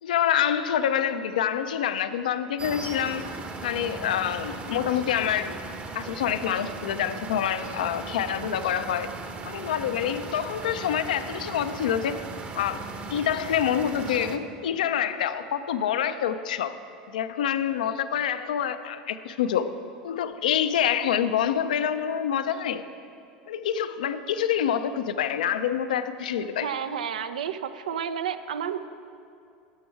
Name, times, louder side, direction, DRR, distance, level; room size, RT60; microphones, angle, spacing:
voice 1, 0.0-3.3 3.6-5.6 5.9-9.1 9.4-12.2 12.5-12.8 13.1-16.8 17.1-19.7 20.0-22.8 23.5-26.7, left 9 dB, 80° left, 11 dB, 0.5 m, -26 dB
sound 1, 2.6-14.4, right 3 dB, 30° right, 0.9 m, -38 dB
voice 2, 26.6-28.8, right 8 dB, 80° right, 12 dB, 0.5 m, -31 dB
12.0 x 6.1 x 4.6 m, 2.5 s
hypercardioid pair, 90°, 4 cm